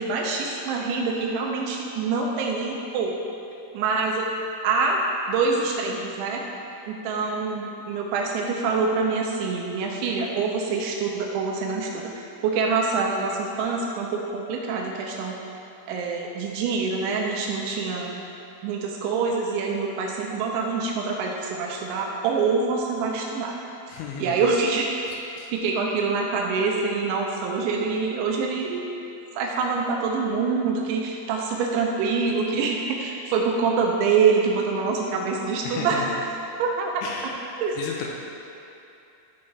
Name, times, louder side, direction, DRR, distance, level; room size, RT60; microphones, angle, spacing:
voice 1, 0.0-3.2 3.7-4.3 4.6-5.0 5.3-6.4 6.9-15.4 15.9-18.2 18.6-23.6 24.2-24.9 25.5-28.9 29.4-36.2 36.6-36.9 37.6-37.8, right 4 dB, 85° right, 0 dB, 2.8 m, -25 dB
voice 2, 23.9-24.4 25.4-25.5 35.6-36.1 37.0-37.3 37.8-38.1, left 6 dB, 85° left, -1 dB, 2.7 m, -34 dB
13.0 x 5.6 x 3.3 m, 2.7 s
omnidirectional pair, 5.9 m